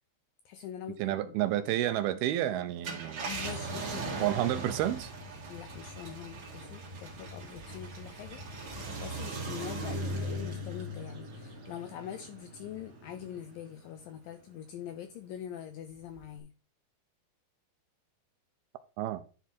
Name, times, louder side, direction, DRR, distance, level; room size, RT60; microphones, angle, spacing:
voice 1, 0.5-1.4 3.2-4.3 5.5-16.5, left 10 dB, 80° left, 2.0 m, -44 dB
voice 2, 1.0-3.2 4.2-5.1 19.0-19.2, right 13 dB, 80° right, 2.4 m, -30 dB
Car, 2.7-13.5 14.0-14.1 16.1-16.4, right 2 dB, 45° right, 1.8 m, -39 dB
10.5 x 4.3 x 4.3 m
omnidirectional pair, 4.7 m